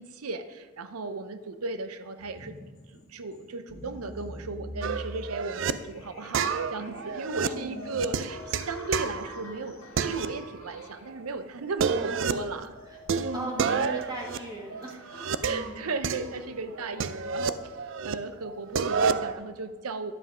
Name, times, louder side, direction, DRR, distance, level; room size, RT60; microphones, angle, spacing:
voice 1, 0.0-2.6 2.9-12.7 13.1-13.9 15.4-17.8 18.0-20.1, right 3 dB, 90° right, 10 dB, 0.7 m, -35 dB
sound 1, 2.2-16.8, left 1 dB, 70° left, 1.7 m, -47 dB
sound 2, 4.8-5.7 6.3-9.6 10.0-10.9 11.1-11.2 11.6-12.5 13.1-15.7 16.0-18.1 18.4-19.3, right 6 dB, 55° right, 0.4 m, -30 dB
voice 2, 7.4-7.9 11.9-12.5 12.8-13.0 13.3-15.8, right 1 dB, 20° right, -1 dB, 1.5 m, -39 dB
10.5 x 7.5 x 4.9 m, 1.4 s
head